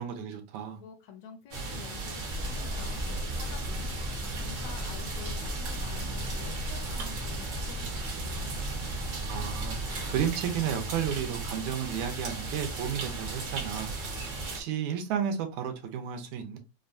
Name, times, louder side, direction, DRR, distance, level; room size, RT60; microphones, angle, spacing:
voice 1, 0.0-0.8 9.3-9.8 10.1-13.9 14.2-16.6, right 8 dB, 80° right, 2.0 m, -32 dB
voice 2, 0.8-2.1 2.4-8.5, left 7 dB, 75° left, 1.8 m, -49 dB
sound 1, 1.5-14.6, right 3 dB, 60° right, 1.1 m, -36 dB
sound 2, 2.3-10.2, equal, 25° left, 0.6 m, -37 dB
sound 3, 4.2-12.6, right 1 dB, 45° right, 0.7 m, -50 dB
5.3 x 2.2 x 2.5 m
omnidirectional pair, 3.4 m